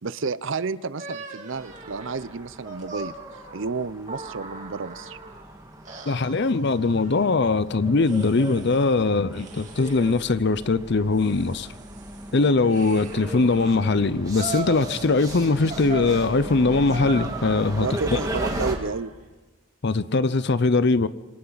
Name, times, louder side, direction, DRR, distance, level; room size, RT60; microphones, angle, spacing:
voice 1, 0.0-3.1 3.5-5.2 17.8-19.1, right 4 dB, 60° right, 0.6 m, -31 dB
sound 1, 1.0-5.4 5.9-7.4 8.0-8.9 9.3-10.3 10.9-13.8 14.4-15.4 15.7-19.1, right 3 dB, 35° right, 2.4 m, -39 dB
sound 2, 1.5-18.7, right 1 dB, 15° right, 2.1 m, -37 dB
voice 2, 6.1-11.7 12.3-18.2 19.8-21.1, left 3 dB, 50° left, 0.6 m, -21 dB
27.0 x 25.5 x 4.0 m
head